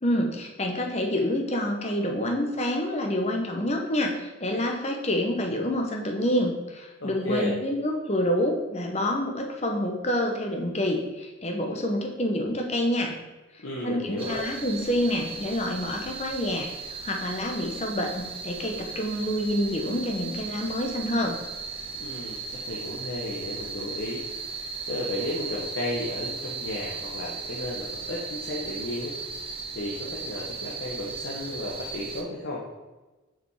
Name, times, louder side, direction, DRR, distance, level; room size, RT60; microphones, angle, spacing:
voice 1, 0.0-13.2 13.8-21.3, left 1 dB, 30° left, 2 dB, 0.9 m, -27 dB
voice 2, 7.0-7.5 13.6-14.4 22.0-24.2 24.5-29.1 29.4-32.6, left 1 dB, 65° left, -4 dB, 1.1 m, -34 dB
sound 1, 14.2-32.2, right 5 dB, 25° right, 0.6 m, -37 dB
6.2 x 5.0 x 4.8 m, 1.2 s
head